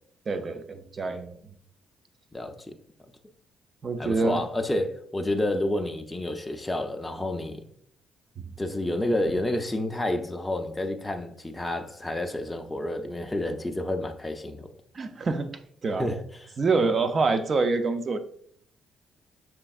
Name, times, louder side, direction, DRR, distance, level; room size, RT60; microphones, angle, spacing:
voice 1, 0.3-1.4 3.8-4.4 8.4-8.5 14.9-16.1 16.6-18.2, right 3 dB, 40° right, 0.5 m, -26 dB
voice 2, 4.0-7.6 8.6-14.7 16.0-16.5, left 1 dB, 15° left, 0.5 m, -29 dB
5.9 x 3.4 x 2.3 m
cardioid pair, 90°, 0 cm